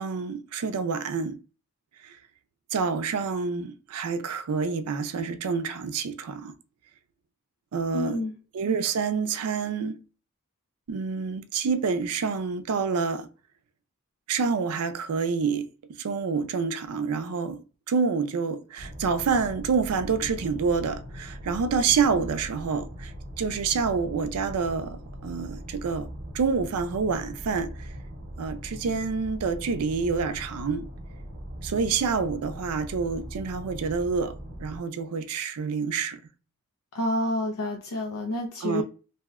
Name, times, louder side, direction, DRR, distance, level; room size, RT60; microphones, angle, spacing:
voice 1, 0.0-1.4 2.0-2.2 2.7-6.5 7.7-8.2 8.5-10.0 10.9-13.3 14.3-15.7 16.0-26.1 26.3-27.9 28.4-30.9 31.6-34.3 34.6-36.2 38.6-38.8, right 5 dB, 85° right, 0.4 m, -27 dB
voice 2, 7.9-8.4 36.9-38.8, left 1 dB, 80° left, 0.5 m, -28 dB
sound 1, 18.8-34.8, equal, 45° right, 0.7 m, -40 dB
2.7 x 2.1 x 3.4 m
head